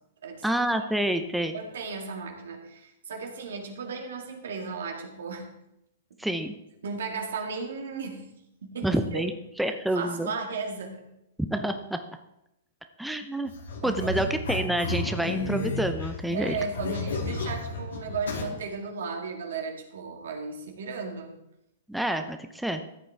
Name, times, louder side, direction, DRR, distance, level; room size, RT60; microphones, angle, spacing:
voice 1, 0.4-1.6 6.2-6.6 8.8-9.3 9.6-10.3 11.5-12.0 13.0-13.5 13.8-16.6 21.9-22.8, right 1 dB, ahead, 6 dB, 0.7 m, -28 dB
voice 2, 1.5-5.5 6.8-8.2 8.6-9.2 9.9-11.0 13.8-14.2 16.3-21.3, right 4 dB, 70° right, 3 dB, 2.1 m, -35 dB
sound 1, 13.5-18.4, left 2 dB, 75° left, 2.5 m, -32 dB
14.5 x 8.5 x 3.4 m, 0.84 s
hypercardioid pair, 120°, 0 cm